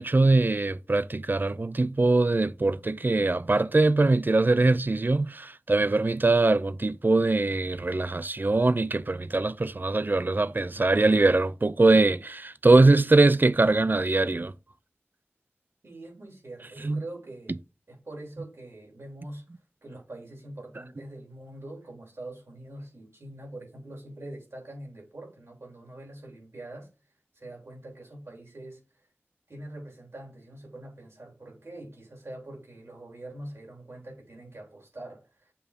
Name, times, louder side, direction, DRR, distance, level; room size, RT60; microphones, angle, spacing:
voice 1, 0.0-14.5 16.8-17.0, right 2 dB, 45° right, 0.4 m, -22 dB
voice 2, 15.8-17.5 17.9-19.4 19.8-26.9 27.3-29.1 29.5-35.5, right 1 dB, 85° right, 3.5 m, -44 dB
6.8 x 2.7 x 5.0 m
wide cardioid pair, 40°, 4 cm